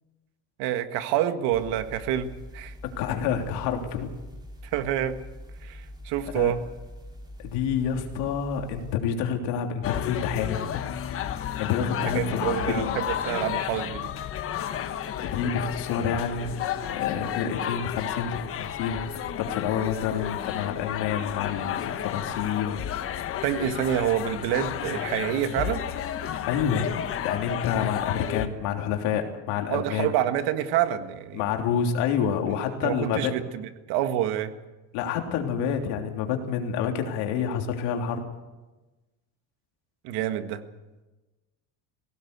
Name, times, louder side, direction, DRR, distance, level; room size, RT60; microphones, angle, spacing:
voice 1, 0.6-2.7 4.6-5.2 5.6-6.6 12.0-14.1 23.4-25.8 29.7-31.4 32.8-34.5 40.0-40.6, right 11 dB, 70° right, 9 dB, 1.8 m, -27 dB
sound 1, 1.5-9.0, left 1 dB, 10° right, 4.1 m, -43 dB
voice 2, 2.8-4.1 6.3-6.5 7.4-10.6 11.6-12.9 15.2-16.5 16.9-23.3 26.5-26.9 27.2-30.1 31.3-33.3 34.9-38.2, left 7 dB, 70° left, 3 dB, 3.3 m, -28 dB
sound 2, 9.8-28.5, left 10 dB, 35° left, 1.1 m, -32 dB
21.0 x 17.5 x 8.2 m, 1.1 s
cardioid pair, 160°, 40 cm